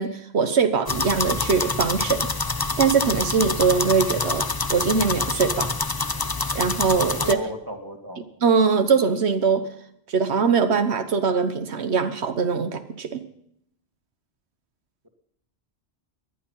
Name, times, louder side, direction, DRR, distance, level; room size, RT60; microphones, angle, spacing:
voice 1, 0.0-2.3 2.8-4.4 4.7-5.7 6.5-7.4 8.4-9.7 10.1-13.2, right 5 dB, 85° right, 9 dB, 1.4 m, -22 dB
sound 1, 0.9-7.3, left 3 dB, 25° left, 0.8 m, -26 dB
voice 2, 7.2-8.2, equal, 20° right, 4 dB, 2.3 m, -34 dB
19.5 x 12.0 x 5.6 m, 0.74 s
omnidirectional pair, 1.1 m